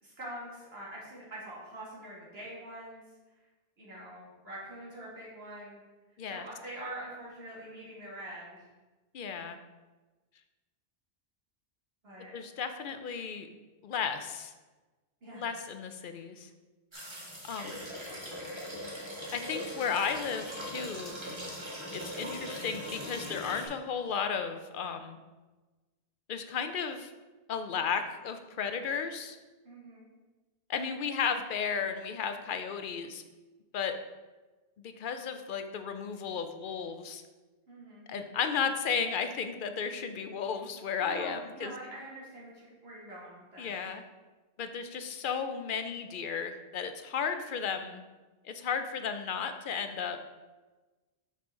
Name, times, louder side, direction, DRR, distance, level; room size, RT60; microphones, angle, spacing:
voice 1, 0.0-3.0 3.8-5.8 6.3-8.7 12.0-12.3 15.2-15.5 29.6-30.1 37.7-38.2 41.0-43.8, right 1 dB, 75° right, -6 dB, 2.3 m, -44 dB
voice 2, 9.1-9.6 12.3-13.5 13.8-14.5 15.3-16.5 17.4-17.8 19.3-21.2 21.9-25.2 26.3-27.1 27.5-29.4 30.7-33.2 33.7-33.9 34.8-37.2 38.1-41.7 43.6-44.0 44.6-48.0 48.4-50.2, left 6 dB, 60° left, 8 dB, 0.7 m, -34 dB
sound 1, 16.9-23.7, equal, 25° right, 1.5 m, -40 dB
6.0 x 5.6 x 3.7 m, 1.2 s
omnidirectional pair, 1.1 m